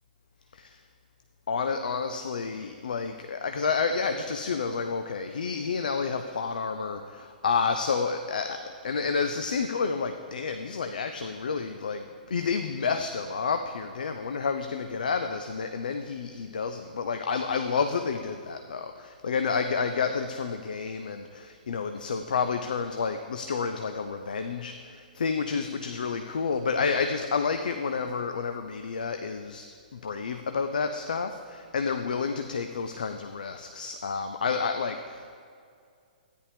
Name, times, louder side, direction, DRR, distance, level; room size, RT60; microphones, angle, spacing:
voice 1, 1.5-35.4, left 5 dB, 65° left, 7 dB, 0.5 m, -30 dB
13.5 x 9.9 x 3.4 m, 2.3 s
figure-of-eight pair, 115°, 5 cm